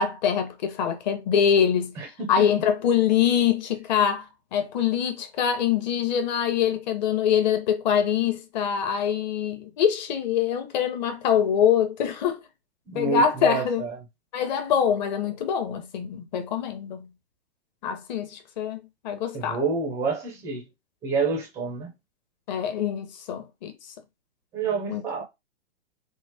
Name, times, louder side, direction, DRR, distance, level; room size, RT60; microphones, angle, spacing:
voice 1, 0.0-1.9 2.3-12.4 12.9-13.9 14.3-17.1 17.8-18.8 19.0-19.6 22.5-23.7 24.9-25.0, left 8 dB, 40° left, 0.8 m, -24 dB
voice 2, 2.0-2.5 12.9-14.0 19.3-20.7 21.0-21.9 24.5-25.2, right 4 dB, 10° right, 0.4 m, -28 dB
3.2 x 2.0 x 3.3 m
hypercardioid pair, 130°, 35 cm